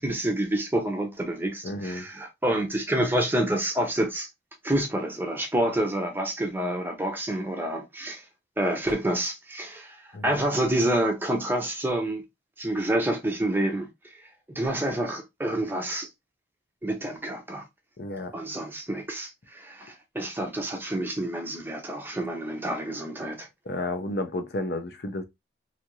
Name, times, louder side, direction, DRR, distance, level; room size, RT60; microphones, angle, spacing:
voice 1, 0.0-4.3 4.6-8.2 8.6-12.2 12.6-13.9 14.5-16.1 16.8-17.6 18.3-23.5, right 1 dB, 10° right, 0.6 m, -28 dB
voice 2, 1.6-2.1 10.1-10.5 18.0-18.4 23.7-25.2, left 2 dB, 55° left, 0.5 m, -32 dB
2.7 x 2.4 x 2.9 m
head